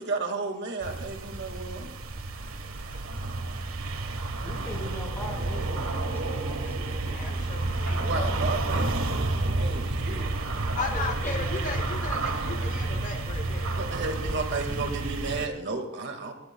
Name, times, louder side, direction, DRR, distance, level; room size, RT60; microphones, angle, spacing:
voice 1, 0.0-1.9 8.0-10.3 13.7-16.3, right 3 dB, 60° right, 4 dB, 2.0 m, -33 dB
sound 1, 0.8-15.5, right 2 dB, 90° right, 1.4 m, -30 dB
voice 2, 4.4-7.4 10.7-11.9, left 1 dB, 10° left, 0 dB, 4.9 m, -40 dB
voice 3, 6.9-8.4 10.8-13.7, left 3 dB, 40° left, 6 dB, 1.0 m, -36 dB
23.0 x 18.0 x 2.3 m, 0.88 s
head